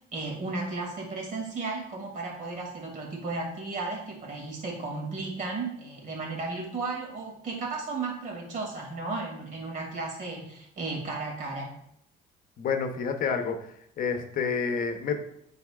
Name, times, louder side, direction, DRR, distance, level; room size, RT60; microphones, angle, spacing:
voice 1, 0.1-11.7, right 3 dB, 50° right, 0 dB, 2.4 m, -34 dB
voice 2, 12.6-13.7 14.0-15.2, left 5 dB, 55° left, 6 dB, 0.9 m, -28 dB
11.5 x 4.1 x 2.4 m, 0.72 s
cardioid pair, 110°, 17 cm